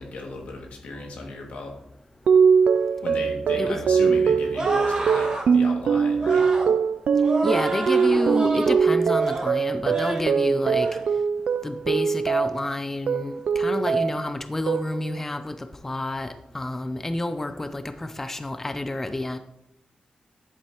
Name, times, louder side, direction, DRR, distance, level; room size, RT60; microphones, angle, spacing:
voice 1, 0.0-1.7 3.0-6.5, left 2 dB, 85° left, 0 dB, 2.1 m, -35 dB
sound 1, 2.3-12.7 13.1-14.3 14.7-15.2, right 6 dB, 80° right, 0.3 m, -22 dB
sound 2, 4.5-5.5 6.2-6.7 7.2-8.8 9.1-9.5 9.9-10.3 10.7-11.0, right 2 dB, 35° right, 1.8 m, -29 dB
voice 2, 7.4-10.9 11.6-19.4, left 2 dB, 15° left, 9 dB, 0.4 m, -29 dB
10.5 x 7.9 x 2.9 m, 0.84 s
wide cardioid pair, 170°, 2 cm